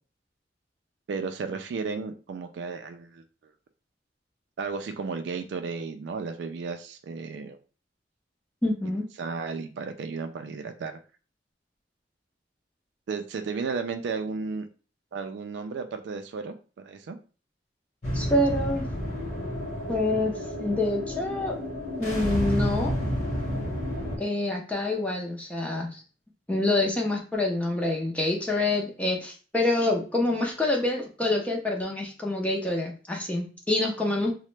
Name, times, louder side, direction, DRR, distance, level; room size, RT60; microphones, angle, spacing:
voice 1, 1.1-3.2 4.6-7.6 9.2-11.0 13.1-14.7 15.1-17.2, right 4 dB, 80° right, 7 dB, 0.3 m, -34 dB
voice 2, 8.6-9.1 18.1-18.8 19.9-21.5 22.0-22.9 24.2-26.0 26.5-34.3, left 2 dB, 10° left, -1 dB, 0.5 m, -26 dB
sound 1, 18.0-24.2, equal, 40° left, 1.0 m, -30 dB
2.9 x 2.1 x 3.1 m, 0.37 s
head